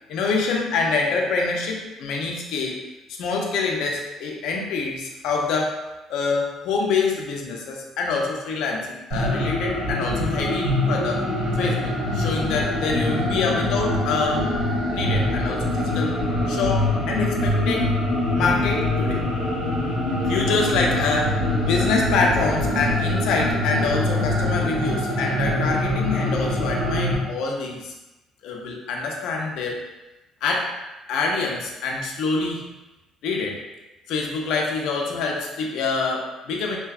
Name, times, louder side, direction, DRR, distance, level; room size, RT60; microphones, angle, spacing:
voice 1, 0.1-5.8 6.1-11.3 11.5-14.5 14.9-16.2 16.5-18.0 18.3-19.2 20.2-27.9 28.4-29.8 30.4-30.8 31.1-32.7 33.2-33.6 34.1-36.8, left 4 dB, 75° left, 0 dB, 0.4 m, -26 dB
sound 1, 9.1-27.2, left 1 dB, 50° right, 1.5 m, -24 dB
2.7 x 2.2 x 2.3 m, 1.0 s
cardioid pair, 125°, 0 cm